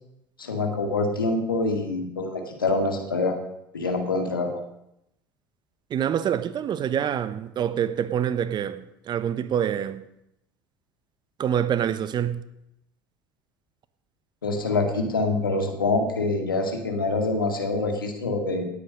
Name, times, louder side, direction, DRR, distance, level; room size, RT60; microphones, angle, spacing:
voice 1, 0.4-3.4 3.7-4.6 14.4-18.6, left 3 dB, 90° left, 2.0 m, -25 dB
voice 2, 5.9-10.0 11.4-12.4, right 9 dB, 40° right, 1.0 m, -26 dB
17.5 x 8.8 x 5.3 m
hypercardioid pair, 70°, 11 cm